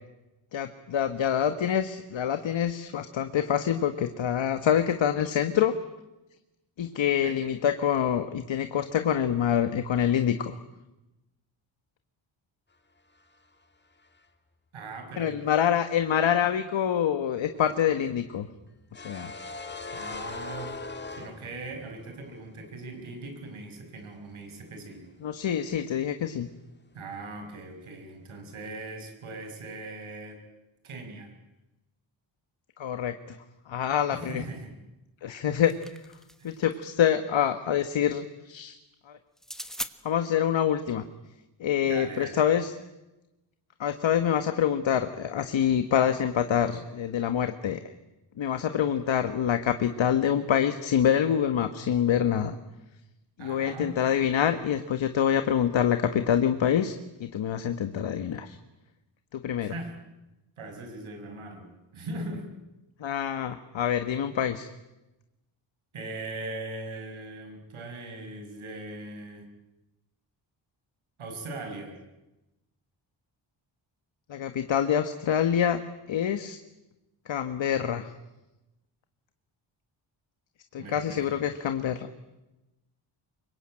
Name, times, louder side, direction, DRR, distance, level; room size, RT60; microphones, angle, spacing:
voice 1, 0.5-5.7 6.8-10.6 15.2-18.5 18.9-19.3 25.2-26.5 32.8-33.4 33.7-34.4 35.2-35.7 36.4-38.8 39.1-39.2 40.0-41.0 41.6-42.7 43.8-47.8 48.4-52.6 53.4-56.9 57.2-58.6 59.3-59.7 63.0-64.7 74.3-75.8 76.1-76.6 77.3-78.1 80.7-82.1, left 9 dB, 70° left, 9 dB, 1.5 m, -26 dB
voice 2, 14.7-15.4 19.9-20.7 21.1-25.0 26.9-30.4 30.8-31.3 34.1-34.7 36.4-36.5 41.8-42.4 53.4-53.9 59.6-59.9 60.6-62.5 65.9-69.5 71.2-72.0 80.8-81.4, right 2 dB, 85° right, 5 dB, 6.2 m, -40 dB
sound 1, 17.6-22.0 22.3-22.4 24.5-25.0 25.2-25.4, left 3 dB, 20° left, 2.0 m, -40 dB
sound 2, 35.3-36.6 39.4-39.9, equal, ahead, 1.1 m, -39 dB
26.0 x 23.5 x 8.9 m, 1.0 s
wide cardioid pair, 140°, 47 cm